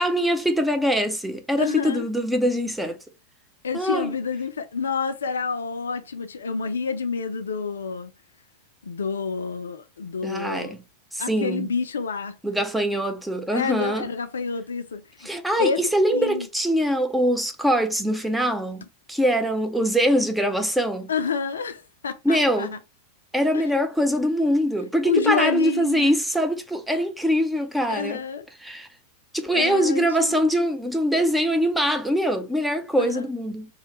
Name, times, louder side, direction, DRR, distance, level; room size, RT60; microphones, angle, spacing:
voice 1, 0.0-3.0 3.7-4.2 10.2-10.8 11.1-11.7 12.4-14.1 15.2-21.1 22.2-22.8 23.3-28.2 28.6-28.9 29.3-33.7, equal, 5° right, 0.5 m, -23 dB
voice 2, 1.6-2.0 3.6-8.1 8.8-10.8 11.2-12.4 13.5-15.3 15.6-15.8 16.1-16.5 21.1-22.8 23.5-23.6 25.0-26.1 27.9-28.5 29.5-30.4 33.0-33.3, left 6 dB, 70° left, 0.4 m, -28 dB
3.0 x 2.1 x 3.0 m
figure-of-eight pair, 90°, 0 cm